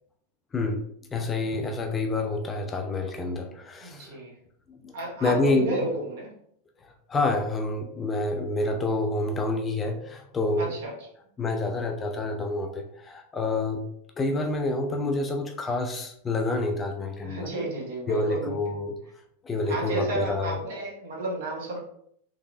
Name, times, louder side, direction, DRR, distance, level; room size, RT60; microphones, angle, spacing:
voice 1, 1.1-4.2 4.7-4.9 5.2-5.9 7.1-10.7 11.4-13.8 14.2-17.5 18.1-18.9 19.4-20.6, left 2 dB, 20° left, 4 dB, 0.4 m, -28 dB
voice 2, 3.8-4.3 4.9-6.3 10.6-10.9 17.2-18.6 19.6-21.8, right 2 dB, 60° right, -1 dB, 1.3 m, -32 dB
3.6 x 3.1 x 2.6 m, 0.67 s
figure-of-eight pair, 90°, 0 cm